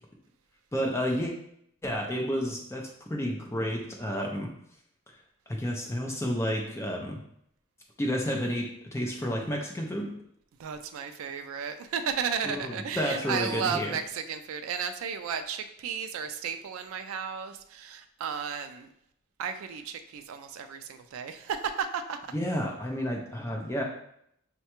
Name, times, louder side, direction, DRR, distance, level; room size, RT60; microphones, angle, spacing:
voice 1, 0.7-1.3 1.8-4.5 5.5-7.2 8.0-10.2 12.4-14.0 22.3-23.8, equal, 10° left, 0 dB, 0.4 m, -31 dB
voice 2, 10.6-18.9 19.4-22.2, right 7 dB, 65° right, 7 dB, 0.3 m, -34 dB
5.5 x 2.2 x 2.9 m, 0.72 s
head